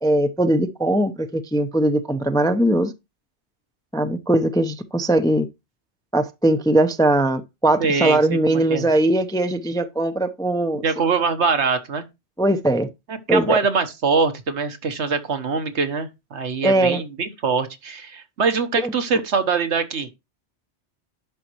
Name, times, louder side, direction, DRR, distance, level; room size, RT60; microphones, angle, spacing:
voice 1, 0.0-2.9 3.9-5.5 6.1-10.8 12.4-12.9 13.3-13.6 16.6-17.0 18.8-18.9, right 1 dB, 5° left, 0.5 m, -20 dB
voice 2, 7.8-8.9 10.7-12.0 13.1-20.1, right 5 dB, 70° right, 1.4 m, -23 dB
10.5 x 6.3 x 3.0 m
omnidirectional pair, 1.2 m